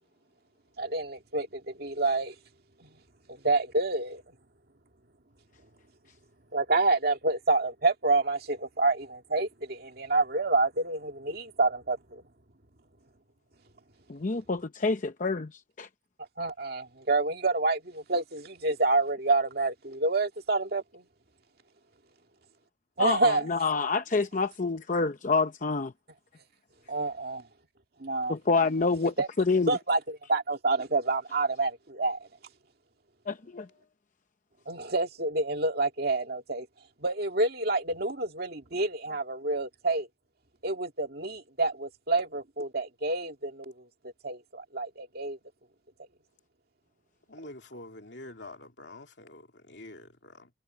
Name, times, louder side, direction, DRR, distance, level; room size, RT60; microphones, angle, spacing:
voice 1, 0.8-2.3 2.8-3.0 3.3-4.3 6.5-12.2 16.4-21.0 23.0-23.4 26.9-27.5 28.0-28.3 29.2-29.3 29.7-32.3 34.7-36.7 37.0-40.1 40.6-45.4, right 3 dB, 55° right, 2.1 m, -28 dB
voice 2, 14.1-15.9 23.0-25.9 28.3-29.8 33.3-33.7, left 4 dB, 45° left, 0.7 m, -27 dB
voice 3, 47.3-50.5, left 2 dB, 65° left, 3.2 m, -46 dB
head